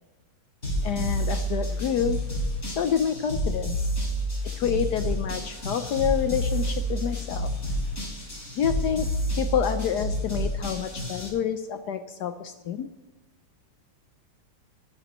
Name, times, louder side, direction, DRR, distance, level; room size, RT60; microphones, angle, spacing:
sound 1, 0.6-11.3, equal, 40° left, 4.8 m, -29 dB
voice 1, 0.8-2.2 2.7-3.9 4.6-7.5 8.5-9.1 9.4-12.9, left 8 dB, 70° left, 9 dB, 1.2 m, -28 dB
27.0 x 11.0 x 3.1 m, 1.2 s
omnidirectional pair, 2.0 m